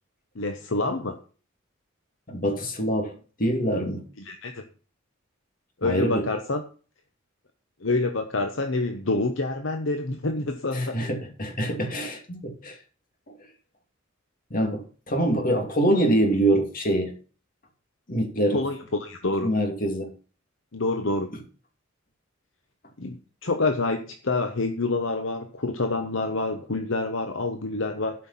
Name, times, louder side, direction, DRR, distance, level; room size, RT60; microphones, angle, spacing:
voice 1, 0.3-1.2 4.3-4.6 5.8-6.6 7.8-11.0 18.5-19.5 20.7-21.3 23.0-28.1, left 3 dB, 65° left, 1.1 m, -27 dB
voice 2, 2.3-3.1 3.4-4.1 5.8-6.3 10.7-12.8 13.3-13.4 14.5-17.1 18.1-18.7 19.4-20.1, right 1 dB, 45° left, 2.6 m, -25 dB
12.0 x 5.7 x 5.8 m
head